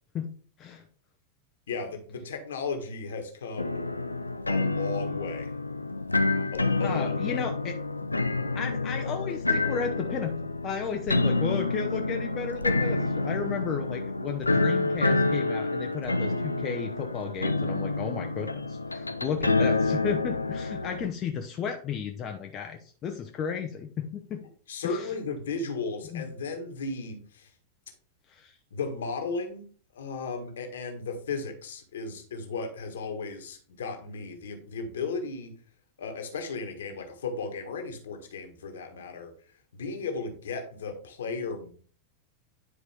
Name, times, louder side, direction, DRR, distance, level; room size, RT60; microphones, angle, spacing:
voice 1, 1.7-3.8 4.5-5.5 6.5-7.5 24.7-27.5 28.7-29.6 29.9-35.5 36.0-39.3 39.8-41.7, left 4 dB, 65° left, 5 dB, 1.6 m, -35 dB
sound 1, 3.6-21.1, left 3 dB, 80° left, 0.4 m, -28 dB
voice 2, 6.8-7.7 8.5-10.3 10.6-24.4 24.8-25.1 26.1-26.2 28.3-28.5, left 7 dB, 30° left, 4 dB, 0.8 m, -34 dB
9.9 x 4.7 x 3.5 m, 0.43 s
figure-of-eight pair, 90°, 0 cm